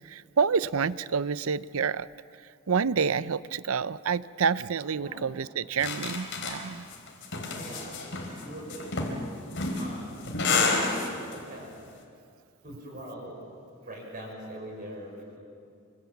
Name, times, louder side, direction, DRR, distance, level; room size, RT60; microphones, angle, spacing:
voice 1, 0.1-2.1 2.7-6.9, right 6 dB, 70° right, 17 dB, 0.6 m, -28 dB
voice 2, 4.9-5.3 7.5-10.2 10.6-11.7 12.6-13.4 13.9-15.4, right 1 dB, 40° right, -2 dB, 6.2 m, -43 dB
sound 1, 5.8-11.4, left 3 dB, 55° left, 3.8 m, -30 dB
26.0 x 26.0 x 7.3 m, 2.3 s
head